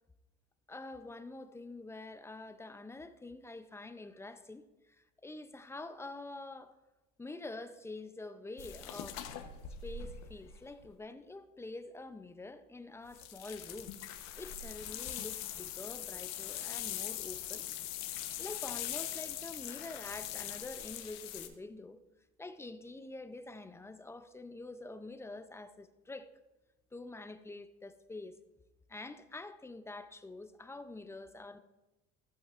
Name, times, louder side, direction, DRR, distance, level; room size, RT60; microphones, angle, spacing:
voice 1, 0.7-6.7 7.2-9.2 9.8-17.7 18.4-22.0 22.4-26.3 26.9-28.4 28.9-31.6, left 2 dB, 10° left, 0.5 m, -46 dB
sound 1, 8.6-10.9 13.1-21.5, left 11 dB, 65° left, 1.0 m, -42 dB
15.0 x 8.5 x 2.5 m
supercardioid pair, 110°, 29 cm